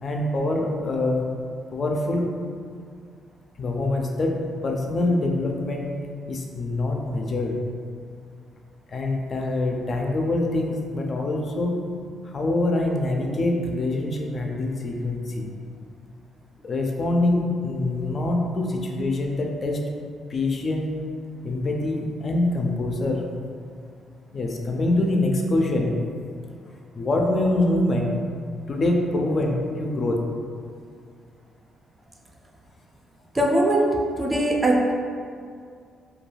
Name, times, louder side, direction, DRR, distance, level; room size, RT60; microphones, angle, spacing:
voice 1, 0.0-1.2 1.7-2.3 3.6-5.9 6.3-7.6 8.9-11.8 12.2-15.5 16.6-19.8 20.3-20.9 21.4-23.3 24.3-26.0 26.9-28.2 28.7-30.2, left 2 dB, 45° left, 1 dB, 0.4 m, -24 dB
voice 2, 33.3-33.9 34.2-34.9, right 1 dB, 20° right, -2 dB, 0.4 m, -20 dB
2.3 x 2.3 x 3.1 m, 2.2 s
cardioid pair, 90°, 0 cm